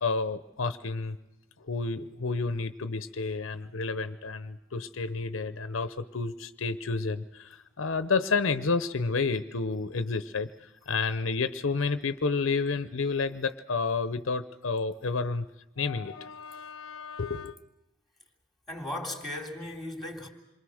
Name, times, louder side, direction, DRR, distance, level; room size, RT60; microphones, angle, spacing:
voice 1, 0.0-1.2 1.6-15.5 15.8-17.5, left 4 dB, 75° left, 0.8 m, -30 dB
voice 2, 18.7-20.3, left 1 dB, ahead, 3.2 m, -36 dB
28.0 x 23.0 x 6.4 m
head